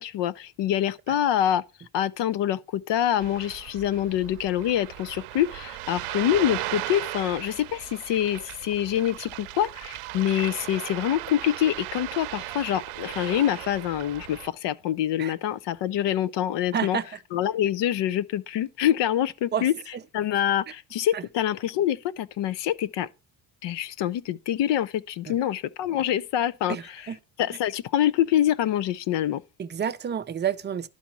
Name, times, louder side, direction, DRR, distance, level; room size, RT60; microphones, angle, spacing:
voice 1, 0.0-1.6 1.9-17.0 17.3-19.7 20.1-23.1 23.6-26.8 27.4-29.4, left 11 dB, 60° left, 0.6 m, -25 dB
Ocean, 3.2-14.5, right 18 dB, 80° right, 0.7 m, -37 dB
voice 2, 16.7-17.1 19.5-19.7 21.1-21.2 25.3-25.4 25.9-26.0 26.7-27.2 29.6-30.9, right 8 dB, 25° right, 0.4 m, -29 dB
11.5 x 4.2 x 5.9 m
cardioid pair, 135°, 50 cm